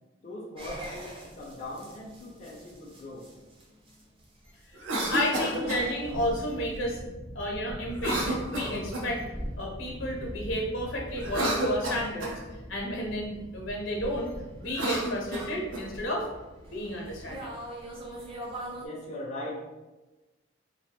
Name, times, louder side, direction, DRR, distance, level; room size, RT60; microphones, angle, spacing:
voice 1, 0.2-3.3 18.8-19.6, left 1 dB, 35° left, -2 dB, 0.4 m, -40 dB
sound 1, 0.6-18.9, equal, 30° right, 0.5 m, -42 dB
Cough, 4.7-5.9 8.0-9.2 11.1-12.4 14.6-15.9, right 1 dB, 85° right, 0.5 m, -31 dB
voice 2, 5.1-7.0 7.3-9.2 9.6-12.3 12.7-14.3 14.6-16.3 16.7-17.5, left 1 dB, 85° left, -1 dB, 0.7 m, -32 dB
2.4 x 2.2 x 2.7 m, 1.1 s
head